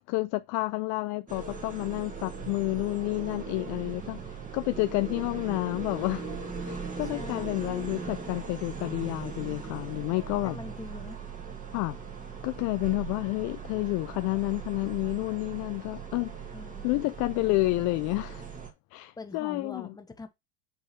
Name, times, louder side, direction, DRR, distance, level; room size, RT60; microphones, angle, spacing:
voice 1, 0.1-6.3 6.6-10.6 11.7-12.0 12.4-16.5 16.8-18.4 18.9-19.9, left 22 dB, 45° left, 0.4 m, -30 dB
sound 1, 1.3-18.7, right 5 dB, 20° right, 2.1 m, -39 dB
voice 2, 7.0-7.7 10.4-11.2 16.5-17.0 19.2-20.3, left 3 dB, 10° left, 1.0 m, -43 dB
5.5 x 4.0 x 5.9 m
supercardioid pair, 110°, 42 cm